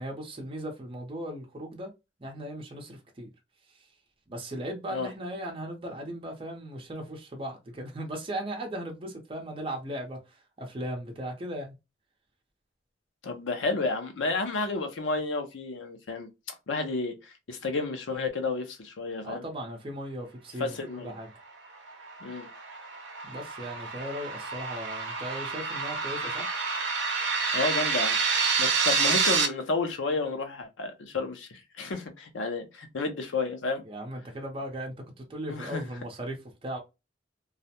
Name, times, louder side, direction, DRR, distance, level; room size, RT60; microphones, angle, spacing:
voice 1, 0.0-1.9 2.2-3.3 3.7-3.9 4.3-11.8 19.2-21.3 23.2-26.4 33.8-36.8, right 1 dB, 30° right, 0.6 m, -37 dB
voice 2, 13.2-19.5 20.6-21.1 22.2-22.5 27.5-28.2 28.6-33.8 35.5-35.8, left 3 dB, 80° left, 0.6 m, -31 dB
sound 1, 21.7-29.5, right 5 dB, 65° right, 0.6 m, -28 dB
2.4 x 2.0 x 2.7 m
head